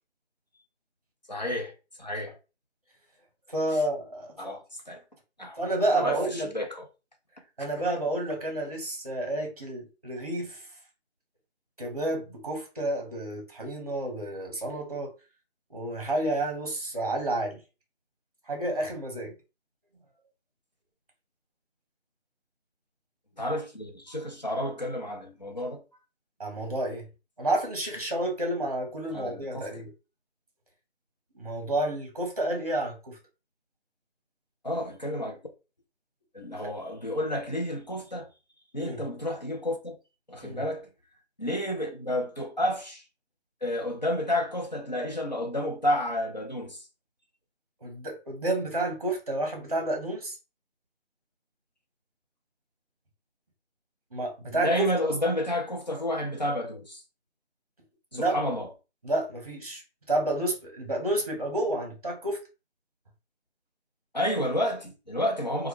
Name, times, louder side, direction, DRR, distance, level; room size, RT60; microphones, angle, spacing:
voice 1, 1.3-1.7 2.0-2.4 3.7-3.8 4.4-5.0 5.4-5.6 5.9-6.9 23.4-25.8 29.1-29.8 34.6-35.4 36.3-38.3 38.7-40.0 40.3-40.9 41.4-43.0 43.6-46.9 54.5-57.0 58.1-58.7 64.1-65.7, left 1 dB, 40° left, 0.5 m, -30 dB
voice 2, 3.5-4.6 5.6-6.5 7.6-10.6 11.8-15.1 15.7-17.6 18.5-19.3 26.4-27.0 27.4-29.9 31.3-33.2 38.8-39.0 40.4-40.6 47.8-50.4 54.1-54.8 58.1-58.4 59.0-59.8 60.1-62.4, right 1 dB, 35° right, 0.8 m, -30 dB
3.0 x 2.3 x 3.1 m
figure-of-eight pair, 165°, 35 cm